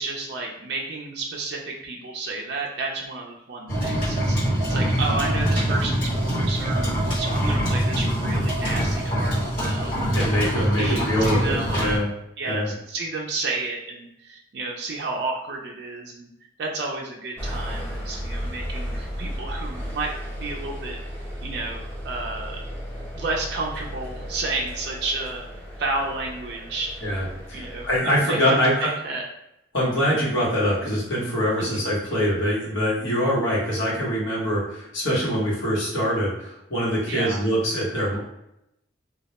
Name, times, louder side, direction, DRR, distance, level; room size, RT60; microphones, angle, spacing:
voice 1, 0.0-10.1 10.8-12.1 12.4-16.3 16.6-21.0 21.4-22.6 23.2-25.4 25.8-27.2 27.5-29.2 31.6-31.9 37.1-37.4, right 3 dB, 55° right, -1 dB, 0.3 m, -31 dB
sound 1, 3.7-12.0, equal, 45° left, 1.0 m, -24 dB
voice 2, 10.1-12.1 12.5-12.7 27.0-28.9 29.7-38.2, equal, 85° left, -5 dB, 0.9 m, -24 dB
sound 2, 17.4-28.0, equal, 10° left, 0.7 m, -34 dB
2.2 x 2.0 x 2.8 m, 0.83 s
head